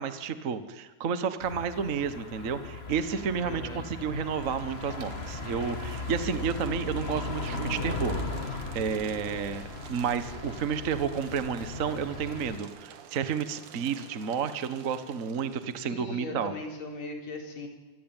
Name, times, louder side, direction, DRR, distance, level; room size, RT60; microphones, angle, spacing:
voice 1, 0.0-8.2 8.5-9.6 9.9-16.5, right 6 dB, 55° right, 11 dB, 0.8 m, -31 dB
sound 1, 1.4-12.6, left 3 dB, 20° left, 2.1 m, -37 dB
voice 2, 3.4-3.9 15.8-17.7, left 2 dB, 60° left, 3 dB, 5.1 m, -39 dB
sound 2, 4.3-15.9, right 8 dB, 80° right, 3.0 m, -50 dB
26.0 x 25.0 x 9.1 m, 1.2 s
omnidirectional pair, 3.5 m